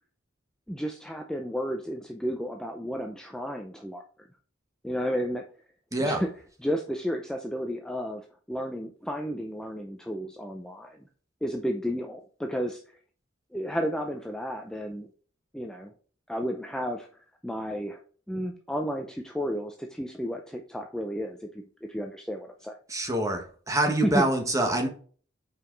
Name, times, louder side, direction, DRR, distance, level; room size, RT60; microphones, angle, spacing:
voice 1, 0.7-4.0 4.8-5.4 6.0-6.3 6.6-8.2 8.5-11.0 11.4-12.8 13.5-15.1 15.5-15.9 16.3-17.1 17.4-18.0 18.3-22.8 24.0-24.3, equal, 5° left, 3 dB, 0.5 m, -32 dB
voice 2, 5.9-6.2 22.9-24.9, right 1 dB, 15° right, 4 dB, 1.3 m, -26 dB
5.5 x 4.8 x 3.9 m, 0.42 s
head